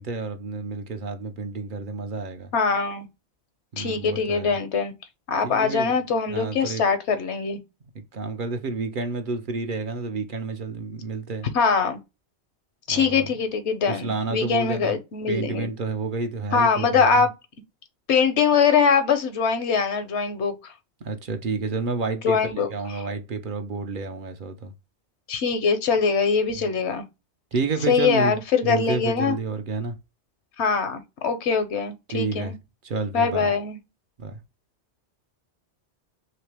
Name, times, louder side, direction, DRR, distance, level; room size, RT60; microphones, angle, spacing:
voice 1, 0.0-2.5 3.7-4.6 5.4-6.0 6.3-6.8 7.9-11.5 12.9-13.3 13.9-15.0 15.3-17.3 21.0-24.7 27.5-28.4 28.6-30.0 32.1-32.6 32.8-33.5 34.2-34.4, right 4 dB, 55° right, 0.7 m, -30 dB
voice 2, 2.5-3.1 3.8-4.9 5.3-7.6 11.5-12.0 12.9-15.7 16.5-17.3 18.1-20.7 22.2-22.7 25.3-27.0 27.9-29.4 30.6-32.5 33.1-33.8, left 5 dB, 80° left, 1.1 m, -22 dB
3.1 x 2.9 x 3.2 m
omnidirectional pair, 1.1 m